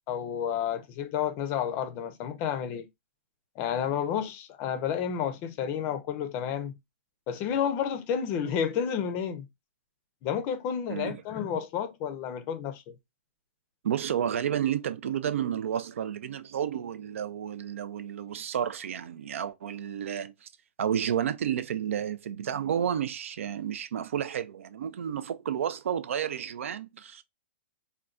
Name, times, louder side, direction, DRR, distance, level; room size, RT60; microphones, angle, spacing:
voice 1, 0.1-2.9 3.6-6.7 7.3-9.5 10.2-13.0, left 8 dB, 30° left, 0.5 m, -31 dB
voice 2, 10.9-11.2 13.8-20.5 20.8-27.2, right 9 dB, 85° right, 0.4 m, -31 dB
3.7 x 2.2 x 2.3 m
hypercardioid pair, 150°, 7 cm